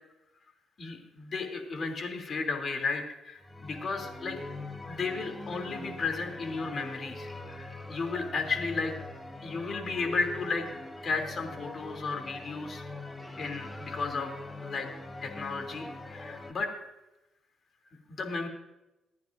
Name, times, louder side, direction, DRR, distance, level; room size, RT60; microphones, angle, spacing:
voice 1, 0.8-4.4 4.9-8.9 9.4-10.6 11.0-12.8 13.4-14.9 15.2-16.7 18.1-18.5, left 4 dB, 45° left, 3 dB, 3.1 m, -34 dB
sound 1, 3.4-16.5, left 2 dB, 15° left, 1.3 m, -42 dB
28.0 x 9.5 x 2.7 m, 0.97 s
cardioid pair, 90°, 0 cm